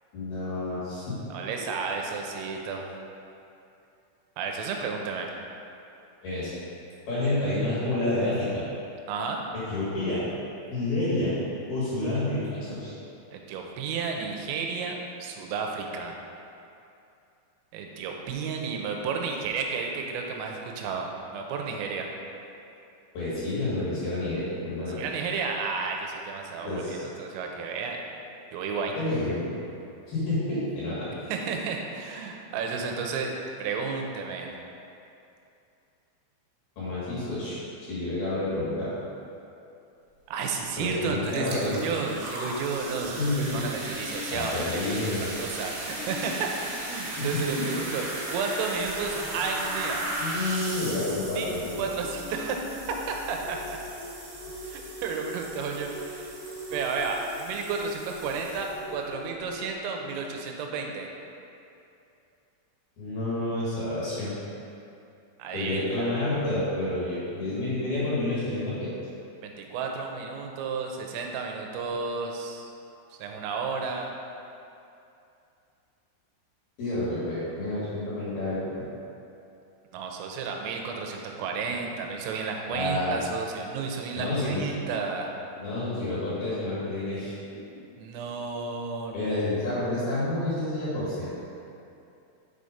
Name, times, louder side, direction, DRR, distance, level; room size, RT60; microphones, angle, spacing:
voice 1, 0.1-1.2 6.2-6.5 7.1-8.6 9.5-10.2 10.7-11.4 11.7-12.9 23.1-25.0 26.6-27.0 29.0-29.5 30.1-31.1 36.8-37.6 37.9-38.9 40.8-41.8 43.2-43.6 44.3-45.3 47.2-47.7 50.2-51.7 63.0-64.3 65.5-68.9 76.8-78.6 82.7-83.1 84.1-84.6 85.6-87.8 89.1-91.3, left 2 dB, 60° left, -9 dB, 2.9 m, -29 dB
voice 2, 1.3-2.9 4.4-5.3 9.1-9.4 13.3-16.2 17.7-22.1 25.0-28.0 28.5-29.0 31.3-33.3 33.6-34.5 40.3-44.8 45.4-50.1 51.4-52.8 53.1-53.8 54.6-56.3 56.7-61.1 65.4-66.1 69.4-72.7 73.1-74.1 79.9-85.3 88.0-89.3, right 5 dB, 85° right, 2 dB, 3.2 m, -32 dB
sound 1, 40.9-41.0 41.2-59.0, right 2 dB, 70° right, 2.7 m, -37 dB
sound 2, 42.3-59.7, left 2 dB, 80° left, 3.5 m, -44 dB
7.4 x 4.0 x 5.0 m, 2.7 s
omnidirectional pair, 5.8 m